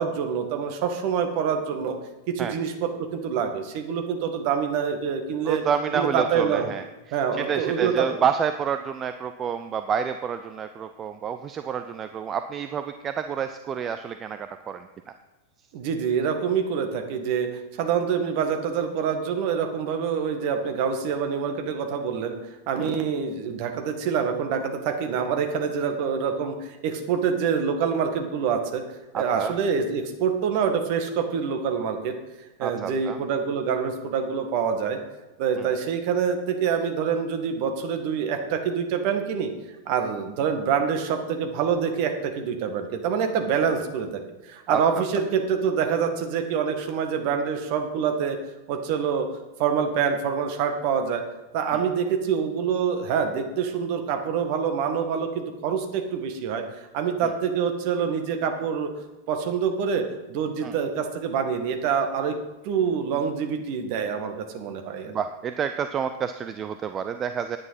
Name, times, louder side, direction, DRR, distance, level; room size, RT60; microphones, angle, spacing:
voice 1, 0.0-2.0 2.4-6.7 7.1-8.1 15.7-22.4 22.7-28.8 29.1-32.1 32.6-35.0 35.4-39.5 39.9-48.4 48.7-49.3 49.6-51.2 51.5-56.6 56.9-58.9 59.3-60.0 60.3-62.4 62.6-65.1, right 7 dB, 45° right, 5 dB, 1.7 m, -26 dB
voice 2, 5.4-6.8 7.3-15.1 22.8-22.9 29.1-29.5 32.6-33.2 35.6-35.7 44.7-44.8 51.7-51.8 60.6-60.7 65.1-67.6, right 7 dB, 25° right, 9 dB, 0.5 m, -29 dB
9.6 x 9.5 x 5.7 m, 1.1 s
figure-of-eight pair, 90°, 0 cm